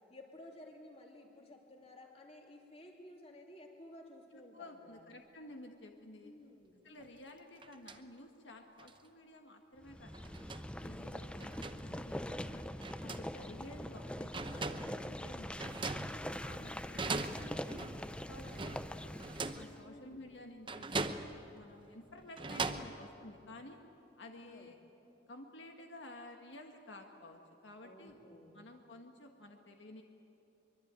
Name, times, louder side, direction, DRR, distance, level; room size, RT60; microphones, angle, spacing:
voice 1, 0.1-5.0 6.2-6.8 11.1-11.5 19.8-20.2 24.4-24.7 27.8-28.6, left 1 dB, 30° left, 1 dB, 3.0 m, -55 dB
voice 2, 4.3-6.3 6.8-10.4 10.8-12.6 13.0-15.8 16.4-19.2 19.5-23.8 24.2-24.8 25.3-28.1 28.5-30.0, left 1 dB, 75° left, 3 dB, 1.6 m, -53 dB
sound 1, 7.0-7.1 7.6-8.0 8.8-8.9 10.1-10.7 11.4-11.8 12.8-13.3 14.0-14.1 14.3-15.0 15.6-16.6 17.0-18.0 18.5-19.7 20.7-21.5 22.2-23.0, right 3 dB, 25° right, 0.8 m, -40 dB
sound 2, 9.8-19.8, left 1 dB, 5° left, 0.5 m, -43 dB
23.5 x 23.5 x 9.0 m, 3.0 s
head